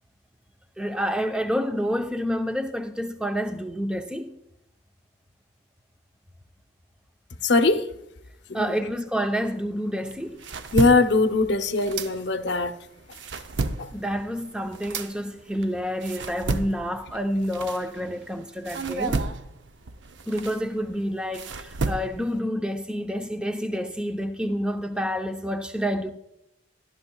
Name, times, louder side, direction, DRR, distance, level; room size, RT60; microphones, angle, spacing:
voice 1, 0.8-4.4 8.5-10.4 13.9-19.3 20.3-26.1, equal, 5° right, 0.7 m, -28 dB
voice 2, 7.4-7.8 8.5-8.7 10.7-12.7 13.8-13.9, left 3 dB, 60° left, 0.7 m, -21 dB
sound 1, 10.1-12.6 13.0-18.3 18.7-22.4, right 3 dB, 70° right, 0.6 m, -32 dB
14.5 x 12.5 x 2.3 m
head